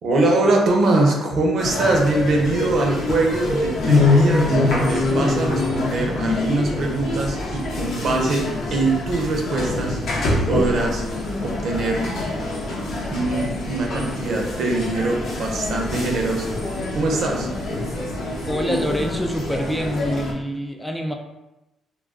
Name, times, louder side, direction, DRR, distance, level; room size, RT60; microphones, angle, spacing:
voice 1, 0.0-10.0 10.5-11.0 11.4-12.1 13.1-16.5 16.9-17.5, right 2 dB, 65° right, 0 dB, 0.6 m, -22 dB
sound 1, 1.6-20.3, left 2 dB, 75° left, 0.7 m, -24 dB
voice 2, 18.5-21.1, equal, 5° left, 2 dB, 0.3 m, -25 dB
2.2 x 2.2 x 3.5 m, 0.96 s
cardioid pair, 90°, 0 cm